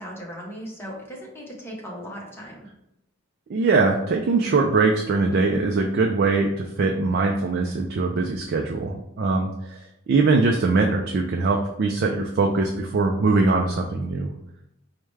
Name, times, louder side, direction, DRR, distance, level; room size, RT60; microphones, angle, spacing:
voice 1, 0.0-2.7, equal, 10° left, -3 dB, 0.9 m, -37 dB
voice 2, 3.5-14.3, right 3 dB, 50° right, 1 dB, 0.3 m, -22 dB
4.6 x 2.1 x 3.2 m, 0.82 s
head